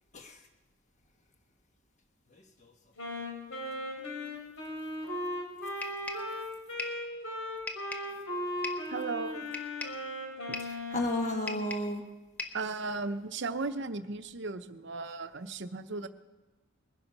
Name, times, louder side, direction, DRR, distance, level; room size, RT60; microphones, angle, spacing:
voice 1, 2.3-2.7 10.6-12.0, left 1 dB, 35° left, 4 dB, 1.4 m, -34 dB
Wind instrument woodwind instrument, 3.0-11.6, left 1 dB, 75° left, 3.6 m, -37 dB
sound 1, 5.8-6.3 6.8-7.0 7.7-8.1 8.6-8.9 9.5-10.0 10.5-10.8 11.5-12.0 12.4-12.7, left 2 dB, 10° left, 0.9 m, -39 dB
voice 2, 8.9-9.5 10.5-10.6 12.5-16.1, right 3 dB, 55° right, 10 dB, 0.7 m, -36 dB
21.0 x 10.5 x 5.5 m, 1.2 s
head